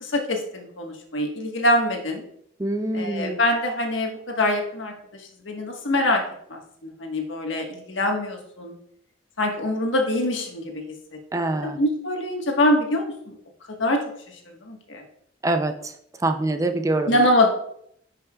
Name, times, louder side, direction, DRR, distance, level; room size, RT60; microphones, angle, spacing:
voice 1, 0.0-2.2 2.9-6.2 6.5-8.7 9.4-10.8 11.6-13.3 13.8-15.0 17.1-17.5, left 1 dB, 80° left, 2 dB, 1.4 m, -24 dB
voice 2, 2.6-3.4 11.3-11.8 15.4-15.9 16.2-17.2, right 2 dB, 15° right, 6 dB, 0.5 m, -25 dB
10.5 x 5.6 x 2.3 m, 0.69 s
head